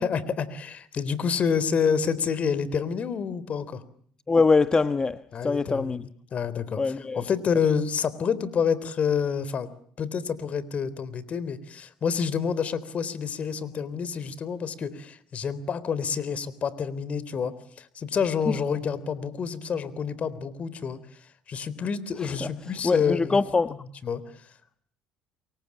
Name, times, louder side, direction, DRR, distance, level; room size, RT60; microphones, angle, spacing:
voice 1, 0.0-3.8 5.3-9.7 10.0-21.0 21.5-23.4 23.7-23.8 24.0-24.2, left 6 dB, 45° left, 18 dB, 3.8 m, -28 dB
voice 2, 4.3-6.0 6.8-7.2 22.4-22.5 22.8-23.7, left 4 dB, 25° left, 12 dB, 1.2 m, -23 dB
29.0 x 24.0 x 8.6 m, 0.62 s
supercardioid pair, 75°, 3 cm